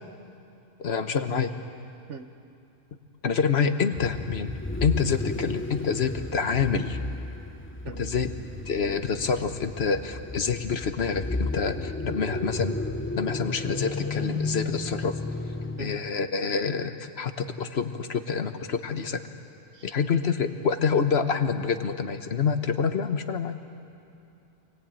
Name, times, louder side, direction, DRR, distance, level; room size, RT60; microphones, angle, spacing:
voice 1, 0.8-1.5 3.2-4.5 4.8-7.0 8.0-8.3 8.7-12.8 13.2-15.2 15.8-19.2 19.8-23.6, left 6 dB, 55° left, 9 dB, 1.3 m, -27 dB
voice 2, 2.1-2.3 5.2-5.3 7.8-8.1 15.8-15.9 19.7-20.0, right 6 dB, 65° right, 9 dB, 1.3 m, -41 dB
sound 1, 3.9-16.1, left 2 dB, 10° left, 0.7 m, -33 dB
26.5 x 19.5 x 9.0 m, 2.7 s
omnidirectional pair, 1.4 m